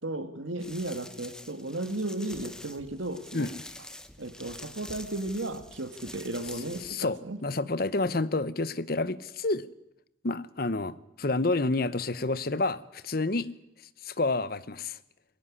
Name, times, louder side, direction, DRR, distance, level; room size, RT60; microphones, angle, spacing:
voice 1, 0.0-3.5 4.2-7.4, right 1 dB, 85° right, 9 dB, 2.1 m, -35 dB
sound 1, 0.6-6.9, left 1 dB, 5° left, 0.9 m, -46 dB
voice 2, 6.8-9.7 10.2-13.5 14.0-15.0, left 2 dB, 50° left, 16 dB, 0.9 m, -29 dB
21.5 x 17.0 x 9.9 m, 0.86 s
head